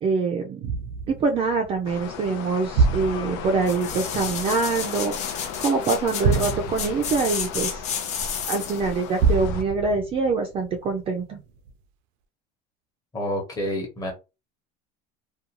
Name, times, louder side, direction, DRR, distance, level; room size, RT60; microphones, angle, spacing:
voice 1, 0.0-0.7 1.1-7.8 8.5-11.4, right 4 dB, 25° right, 0.4 m, -25 dB
sound 1, 0.6-5.6 6.2-8.6 9.2-11.2 11.7-11.8, right 5 dB, 80° right, 0.5 m, -27 dB
sound 2, 1.8-9.6, left 7 dB, 80° left, 0.6 m, -36 dB
sound 3, 3.6-8.9 9.3-9.4, left 7 dB, 35° left, 0.5 m, -31 dB
voice 2, 13.1-14.1, equal, 15° left, 0.9 m, -28 dB
2.5 x 2.3 x 2.8 m
cardioid pair, 160°, 21 cm